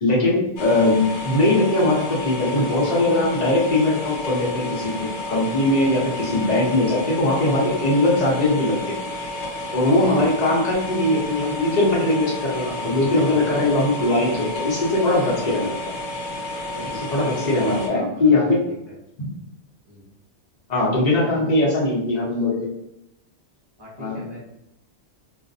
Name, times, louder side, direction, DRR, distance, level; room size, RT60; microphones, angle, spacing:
voice 1, 0.0-8.8 9.7-15.8 17.1-18.6 20.7-22.7 24.0-24.2, left 2 dB, 40° left, -5 dB, 0.9 m, -20 dB
sound 1, 0.6-17.9, left 1 dB, 80° left, 0.9 m, -31 dB
voice 2, 10.1-10.4 12.5-14.5 15.2-15.6 16.6-18.4 18.7-19.0 19.8-20.1 20.9-21.5 23.8-24.4, equal, 25° right, -6 dB, 0.6 m, -38 dB
2.4 x 2.1 x 2.6 m, 0.80 s
omnidirectional pair, 1.1 m